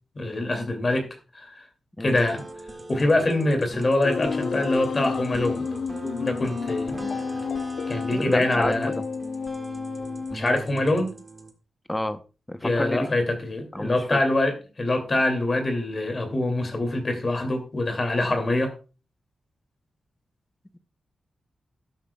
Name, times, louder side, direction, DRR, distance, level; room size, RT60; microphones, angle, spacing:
voice 1, 0.1-1.1 1.3-1.7 2.0-2.4 2.9-5.6 6.2-7.0 7.9-8.9 10.3-11.2 12.6-18.7, left 2 dB, 30° left, 2.5 m, -24 dB
sound 1, 2.1-11.5, right 2 dB, 20° right, 1.6 m, -40 dB
sound 2, 4.0-10.4, left 5 dB, 60° left, 0.7 m, -30 dB
voice 2, 8.2-9.0 11.9-12.2 12.5-13.1 13.7-14.2, left 1 dB, 10° left, 0.7 m, -29 dB
13.0 x 12.5 x 2.3 m
wide cardioid pair, 170°, 0 cm